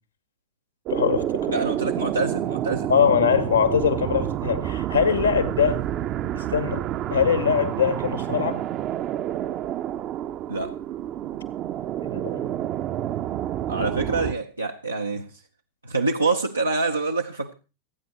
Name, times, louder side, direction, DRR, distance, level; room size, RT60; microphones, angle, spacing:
voice 1, 0.9-1.6 2.9-5.8 6.3-8.6 12.0-12.5 13.8-13.9, left 7 dB, 80° left, 1.7 m, -22 dB
sound 1, 0.9-14.3, right 12 dB, 35° right, 0.6 m, -29 dB
voice 2, 1.5-2.9 10.5-10.7 13.7-15.4 15.8-17.5, right 3 dB, 80° right, 0.6 m, -26 dB
27.5 x 9.3 x 3.0 m
figure-of-eight pair, 90°, 0 cm